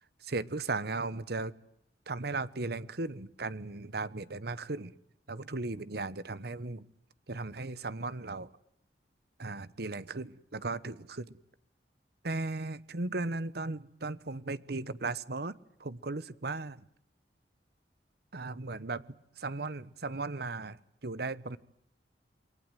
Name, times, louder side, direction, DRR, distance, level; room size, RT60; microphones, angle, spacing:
voice 1, 0.2-1.5 2.1-4.9 5.3-6.9 7.3-8.5 9.4-11.4 12.2-15.5 15.8-16.8 18.3-19.1 19.4-21.6, right 3 dB, 65° right, 17 dB, 1.1 m, -36 dB
28.5 x 23.0 x 9.2 m, 0.72 s
head